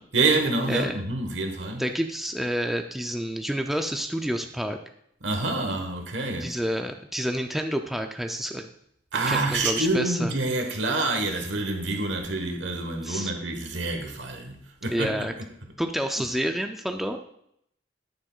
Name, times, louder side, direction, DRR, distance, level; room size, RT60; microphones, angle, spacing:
voice 1, 0.1-1.8 5.2-6.5 9.1-15.1, right 2 dB, 70° right, 1.3 m, -27 dB
voice 2, 0.7-1.0 1.8-4.8 6.4-8.7 9.3-10.3 13.0-13.3 14.9-15.3 15.8-17.2, equal, ahead, 0.4 m, -29 dB
9.6 x 9.1 x 2.4 m
head